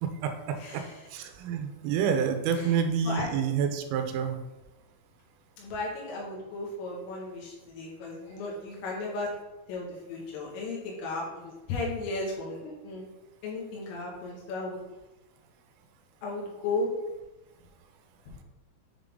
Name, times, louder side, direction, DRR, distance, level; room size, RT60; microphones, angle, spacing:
voice 1, 0.0-0.8 1.1-4.4, right 7 dB, 85° right, 6 dB, 3.3 m, -28 dB
voice 2, 0.6-1.1 2.5-2.7 3.1-3.3 5.6-9.3 9.7-13.1 13.4-14.8 16.2-16.9, left 2 dB, 90° left, -3 dB, 4.3 m, -35 dB
9.5 x 3.8 x 3.5 m, 1.0 s
omnidirectional pair, 5.6 m